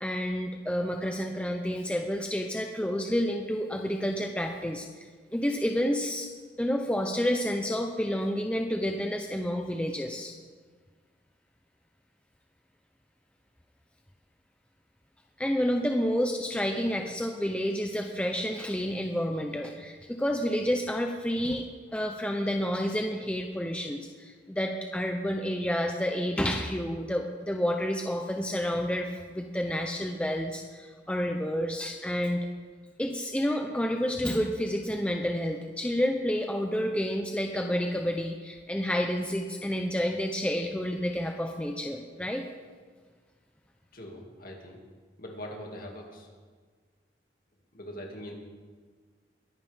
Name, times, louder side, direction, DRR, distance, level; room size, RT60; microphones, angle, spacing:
voice 1, 0.0-6.3 6.6-10.3 15.4-21.7 21.9-32.4 33.0-42.4, equal, 5° left, 3 dB, 0.7 m, -29 dB
voice 2, 43.9-44.8 45.2-46.3 47.7-48.3, equal, 50° left, 0 dB, 2.4 m, -42 dB
22.0 x 11.0 x 3.6 m, 1.5 s
head